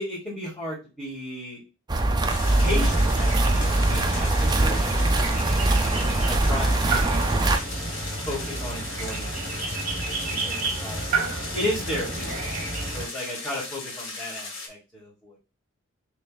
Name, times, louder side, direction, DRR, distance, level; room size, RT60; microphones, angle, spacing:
voice 1, 0.0-1.6 2.6-5.4 6.0-7.4 8.3-9.6 9.9-11.3 11.5-15.4, left 1 dB, 5° left, -10 dB, 2.3 m, -34 dB
sound 1, 1.9-7.6, right 2 dB, 20° right, 0.6 m, -22 dB
sound 2, 2.3-14.7, left 3 dB, 65° left, 1.6 m, -37 dB
sound 3, 2.4-13.1, right 3 dB, 40° right, 1.2 m, -32 dB
6.4 x 3.2 x 2.4 m, 0.30 s
head